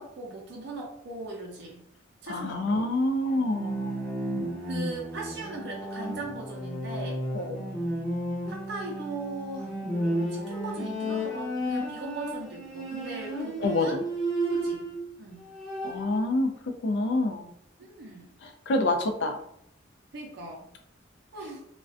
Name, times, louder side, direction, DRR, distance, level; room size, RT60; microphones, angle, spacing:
voice 1, 0.0-1.8 2.2-2.9 4.6-7.2 8.5-14.0 14.5-14.8 15.2-15.4 17.8-18.3 20.1-20.7 21.3-21.6, right 2 dB, 60° right, -2 dB, 0.4 m, -39 dB
voice 2, 2.3-4.0 7.3-7.6 13.6-13.9 15.8-16.5 16.8-17.5 18.4-19.4, left 2 dB, 65° left, 6 dB, 0.4 m, -27 dB
Bowed string instrument, 3.3-15.1 15.4-16.2, right 1 dB, ahead, 0.6 m, -33 dB
2.4 x 2.1 x 2.4 m, 0.72 s
head